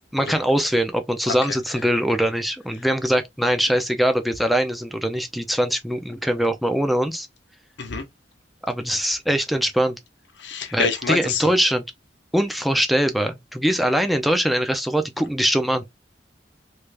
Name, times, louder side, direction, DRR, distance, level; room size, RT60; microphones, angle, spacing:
voice 1, 0.1-7.3 8.7-10.0 10.7-11.8 12.3-15.8, equal, ahead, 0.5 m, -22 dB
voice 2, 1.3-1.6 7.8-8.0 10.4-11.5, left 5 dB, 80° left, 0.8 m, -26 dB
3.3 x 2.5 x 3.3 m
head